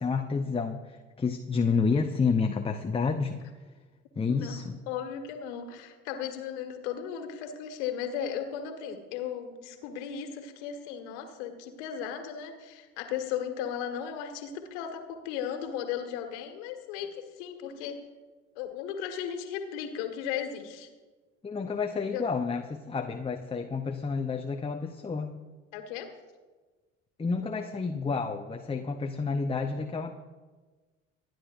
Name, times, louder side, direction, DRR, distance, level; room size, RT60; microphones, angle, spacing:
voice 1, 0.0-3.4 4.2-4.8 21.4-25.3 27.2-30.2, left 5 dB, 15° left, 5 dB, 0.9 m, -29 dB
voice 2, 4.9-18.0 18.6-20.9 22.0-22.2 25.7-26.1, left 8 dB, 65° left, 6 dB, 1.8 m, -36 dB
27.0 x 10.5 x 2.6 m, 1.3 s
figure-of-eight pair, 60°, 37 cm